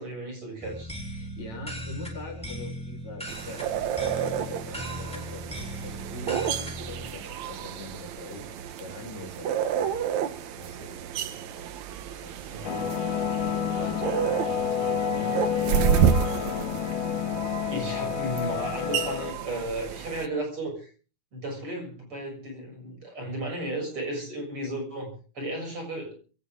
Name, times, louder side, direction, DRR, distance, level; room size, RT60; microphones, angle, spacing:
voice 1, 0.0-0.9 12.5-12.8 17.7-20.9 21.3-26.1, right 1 dB, 40° right, 1 dB, 7.9 m, -34 dB
sound 1, 0.6-7.1, equal, ahead, 3.0 m, -38 dB
voice 2, 1.1-5.4 5.8-9.8 10.5-11.0 12.1-16.0, left 2 dB, 55° left, 0 dB, 5.1 m, -43 dB
sound 2, 3.3-20.3, right 9 dB, 70° right, 2.2 m, -30 dB
sound 3, 12.6-19.3, left 8 dB, 80° left, 3.2 m, -29 dB
22.5 x 17.5 x 3.7 m, 0.39 s
omnidirectional pair, 3.7 m